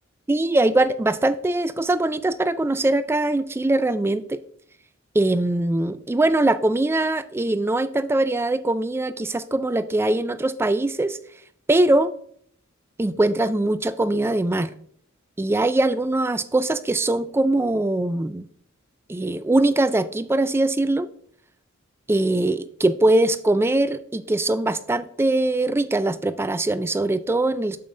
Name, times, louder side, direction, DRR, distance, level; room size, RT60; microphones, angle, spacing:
voice 1, 0.3-4.4 5.1-11.2 11.7-12.1 13.0-14.7 15.4-18.5 19.1-21.1 22.1-27.8, right 2 dB, 10° right, 0.3 m, -22 dB
8.5 x 7.1 x 2.6 m
head